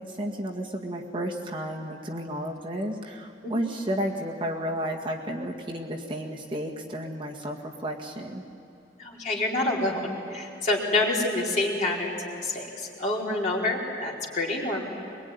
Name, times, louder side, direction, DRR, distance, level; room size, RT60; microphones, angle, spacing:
voice 1, 0.0-8.4, equal, 30° right, -1 dB, 1.9 m, -32 dB
voice 2, 9.0-14.9, left 2 dB, 45° left, -4 dB, 4.2 m, -27 dB
22.5 x 22.5 x 9.6 m, 2.7 s
head